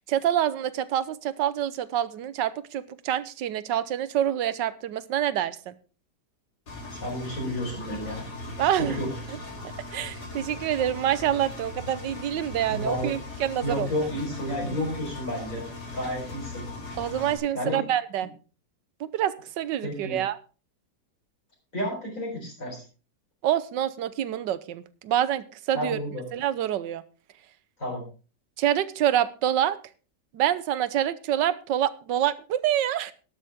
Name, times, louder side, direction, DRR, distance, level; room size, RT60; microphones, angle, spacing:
voice 1, 0.1-5.7 8.6-9.0 9.9-13.9 17.0-18.3 19.0-20.4 23.4-26.0 26.3-27.0 28.6-29.8 30.3-33.1, right 11 dB, 80° right, 16 dB, 1.4 m, -26 dB
Engine, 6.7-17.4, left 2 dB, 60° left, 3.7 m, -39 dB
voice 2, 7.0-8.2 8.8-9.1 12.7-13.2 13.6-15.6 15.9-16.6 17.5-17.8 19.8-20.2 21.7-22.8 25.7-26.2 27.8-28.0, equal, 45° left, -3 dB, 4.7 m, -31 dB
12.0 x 12.0 x 3.5 m, 0.35 s
omnidirectional pair, 1.9 m